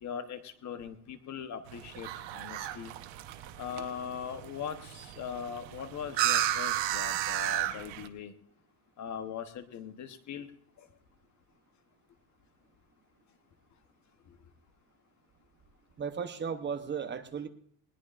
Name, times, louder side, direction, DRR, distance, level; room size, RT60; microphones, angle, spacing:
voice 1, 0.0-2.9 3.6-8.3 9.0-10.5 10.8-10.9, left 8 dB, 40° left, 9 dB, 1.0 m, -40 dB
sound 1, 1.7-8.1, right 12 dB, 80° right, 1.1 m, -34 dB
voice 2, 16.0-17.5, right 6 dB, 25° right, 8 dB, 0.8 m, -35 dB
20.5 x 18.5 x 2.5 m, 0.66 s
cardioid pair, 165°, 44 cm